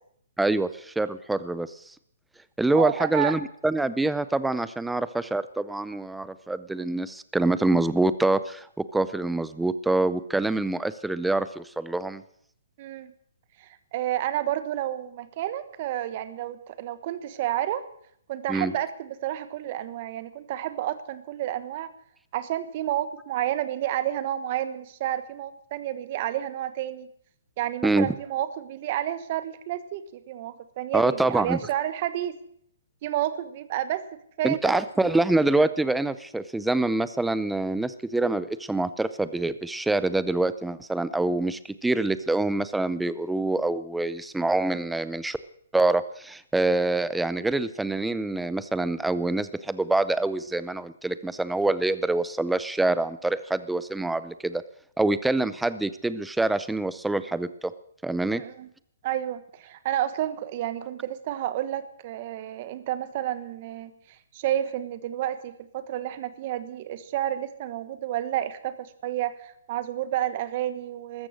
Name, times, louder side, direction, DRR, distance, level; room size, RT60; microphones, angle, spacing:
voice 1, 0.4-1.9 2.6-12.2 18.5-18.7 27.8-28.1 30.9-31.6 34.4-45.4 45.7-54.6 55.0-57.7 58.0-58.4, right 2 dB, 5° right, 15 dB, 0.5 m, -25 dB
voice 2, 2.7-3.4 12.8-13.1 13.6-17.8 18.3-21.9 22.3-27.1 27.6-32.4 33.0-34.0 34.4-34.8 35.1-35.2 58.3-58.7 59.0-63.9 64.3-71.3, right 12 dB, 40° right, 13 dB, 1.2 m, -30 dB
14.0 x 13.5 x 6.4 m, 0.66 s
hypercardioid pair, 155°, 0 cm